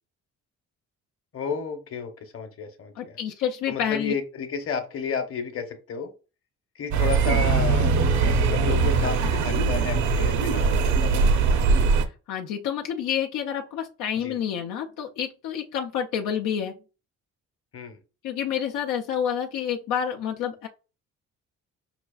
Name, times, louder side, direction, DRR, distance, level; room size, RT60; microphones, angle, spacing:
voice 1, 1.3-3.2 3.7-6.1 6.7-7.9 8.5-11.7 14.2-14.4 17.7-18.0, left 6 dB, 50° left, 1.0 m, -32 dB
voice 2, 3.0-4.1 12.3-16.7 18.2-20.7, left 8 dB, 85° left, 0.6 m, -28 dB
sound 1, 6.9-12.0, right 4 dB, 70° right, 0.7 m, -21 dB
5.8 x 2.4 x 2.3 m
cardioid pair, 90°, 30 cm